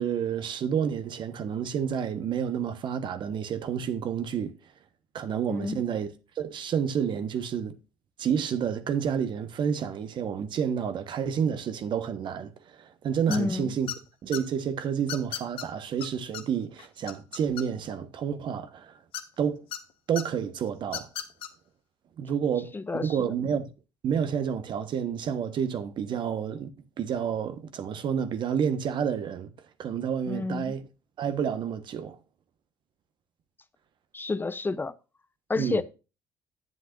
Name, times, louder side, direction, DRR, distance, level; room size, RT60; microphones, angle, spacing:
voice 1, 0.0-4.5 5.1-7.8 8.2-13.9 14.2-18.9 19.4-19.6 20.1-21.1 22.2-23.7 24.0-26.7 27.0-29.5 29.8-30.9 31.2-32.2 35.6-35.8, right 7 dB, 55° right, 1.3 m, -29 dB
voice 2, 5.5-5.8 13.3-13.7 22.7-23.2 30.3-30.7 34.1-34.9 35.5-35.8, left 3 dB, 20° left, 0.7 m, -29 dB
sound 1, 13.3-13.6 13.9-14.4 15.1-15.7 16.0-16.1 16.3-16.4 16.8-18.0 19.1-19.8 20.2-20.3 20.8-21.5, left 10 dB, 70° left, 1.3 m, -35 dB
11.0 x 7.9 x 2.6 m
hypercardioid pair, 65°, 10 cm